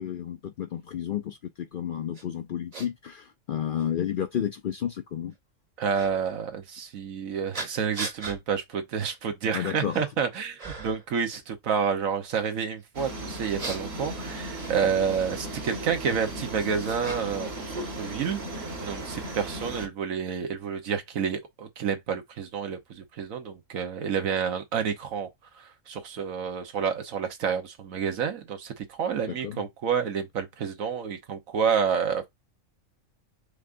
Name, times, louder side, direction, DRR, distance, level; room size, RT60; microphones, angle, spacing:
voice 1, 0.0-5.3 9.5-10.0 29.3-29.6, left 9 dB, 65° left, 0.5 m, -31 dB
sound 1, 2.1-2.2 2.7-2.9 3.8-3.9 5.9-6.1 7.5-8.4 9.0-9.2 9.6-10.1 10.6-11.1 13.3-15.2 16.2-17.5 17.7-18.6, right 2 dB, 30° right, 1.1 m, -39 dB
voice 2, 5.8-25.3 25.6-32.3, right 6 dB, 90° right, 1.4 m, -29 dB
sound 2, 12.9-19.9, right 1 dB, 50° right, 1.5 m, -36 dB
4.8 x 3.5 x 2.5 m
omnidirectional pair, 1.4 m